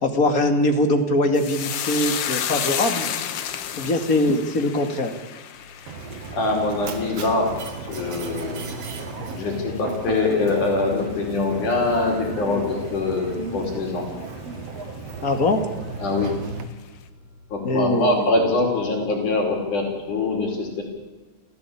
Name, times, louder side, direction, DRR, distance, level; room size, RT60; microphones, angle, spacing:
voice 1, 0.0-3.1 3.8-5.1 9.2-9.3 15.2-15.6 17.6-18.3, left 1 dB, 30° left, 6 dB, 2.4 m, -22 dB
sound 1, 1.3-10.0 10.3-10.9 11.2-11.4, left 9 dB, 60° left, 2.0 m, -32 dB
Mechanisms, 5.9-16.6, right 4 dB, 55° right, 2.8 m, -35 dB
voice 2, 6.3-7.5 7.9-8.6 9.4-14.1 16.0-16.3 17.5-20.8, left 2 dB, 80° left, 1 dB, 6.4 m, -23 dB
29.5 x 14.5 x 8.7 m, 1.2 s
omnidirectional pair, 3.5 m